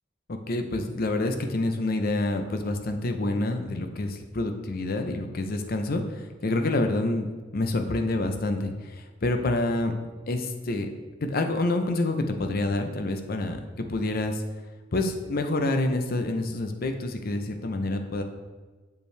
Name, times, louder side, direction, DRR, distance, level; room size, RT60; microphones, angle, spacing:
voice 1, 0.3-9.9 10.3-10.9 11.2-13.6 13.9-14.4 14.9-18.2, left 2 dB, 50° left, 6 dB, 0.6 m, -27 dB
6.8 x 5.2 x 3.2 m, 1.3 s
head